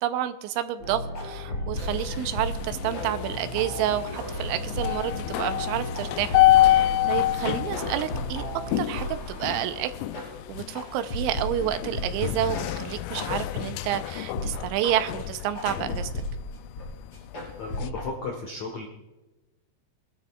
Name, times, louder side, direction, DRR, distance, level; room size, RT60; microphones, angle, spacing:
voice 1, 0.0-6.4 6.7-8.4 8.8-9.9 10.5-16.1, right 11 dB, 90° right, 9 dB, 3.1 m, -29 dB
sound 1, 0.8-11.5 11.9-12.1 12.5-12.7 13.1-13.3 13.8-13.9 14.3-14.5 14.9-15.1 15.5-16.3 16.8-16.9 17.1-18.1, left 1 dB, 30° left, 5.2 m, -34 dB
sound 2, 1.7-17.9, left 15 dB, 90° left, 2.4 m, -28 dB
voice 2, 17.3-18.9, left 3 dB, 70° left, 1 dB, 1.7 m, -35 dB
23.0 x 13.0 x 2.4 m, 1.1 s
omnidirectional pair, 5.4 m